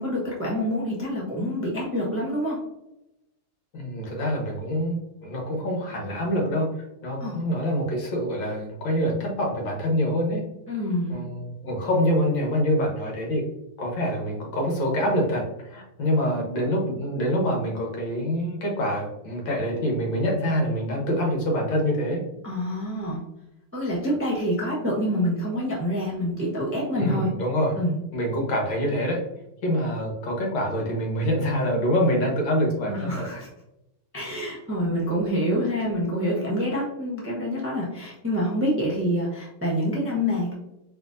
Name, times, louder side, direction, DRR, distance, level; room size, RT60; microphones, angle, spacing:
voice 1, 0.0-2.6 7.2-7.4 10.7-11.2 22.4-23.2 23.7-27.3 27.8-28.0 32.9-33.5 34.1-40.5, equal, 10° right, -5 dB, 0.7 m, -27 dB
voice 2, 3.7-10.4 11.1-13.4 13.8-22.2 27.0-27.8 28.1-29.2 29.6-33.3, equal, 70° left, -1 dB, 1.9 m, -25 dB
5.2 x 3.3 x 2.5 m, 0.90 s
omnidirectional pair, 2.2 m